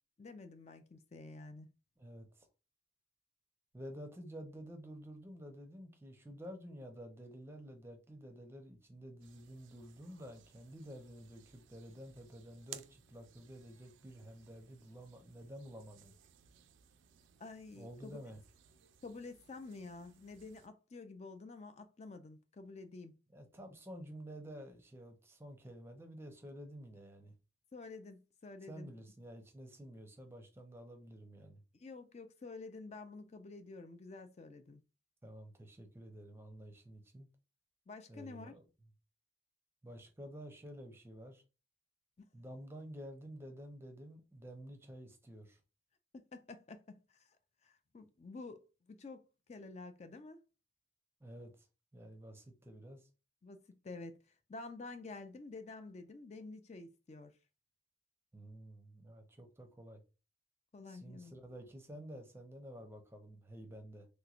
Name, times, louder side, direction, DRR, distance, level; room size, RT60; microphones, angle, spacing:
voice 1, 0.2-1.7 17.4-18.2 19.0-23.2 27.7-28.9 31.8-34.8 37.9-38.5 46.1-47.4 47.6-50.4 53.4-57.4 60.7-61.3, left 3 dB, 35° left, 0.4 m, -50 dB
voice 2, 2.0-2.5 3.7-16.1 17.7-18.4 23.3-27.4 28.7-31.6 35.2-37.3 38.1-38.6 39.8-41.4 42.3-45.6 51.2-51.7 51.9-53.1 58.3-60.0 60.9-64.1, equal, 15° right, 0.6 m, -51 dB
sound 1, 9.2-20.7, right 10 dB, 80° right, 0.4 m, -60 dB
3.3 x 3.0 x 2.4 m
head